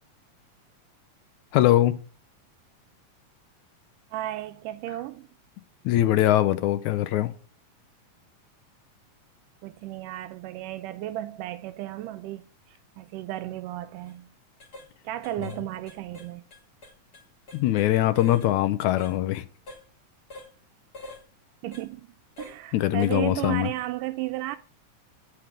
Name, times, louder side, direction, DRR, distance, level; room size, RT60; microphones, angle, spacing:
voice 1, 1.5-2.0 5.9-7.3 17.5-19.5 22.7-23.7, left 14 dB, 75° left, 1.9 m, -22 dB
voice 2, 4.1-5.3 9.6-14.3 15.0-16.4 21.6-24.6, right 15 dB, 85° right, 2.1 m, -34 dB
sound 1, 14.0-14.1 14.6-14.9 15.2-15.6 15.9-17.9 18.1-18.5 19.0-19.2 19.7-19.8 20.3-20.5 20.9-21.2 21.7-21.9 22.4-22.6 23.0-23.2 23.6-23.8, left 2 dB, 30° left, 2.4 m, -45 dB
9.2 x 5.8 x 5.0 m
omnidirectional pair, 3.7 m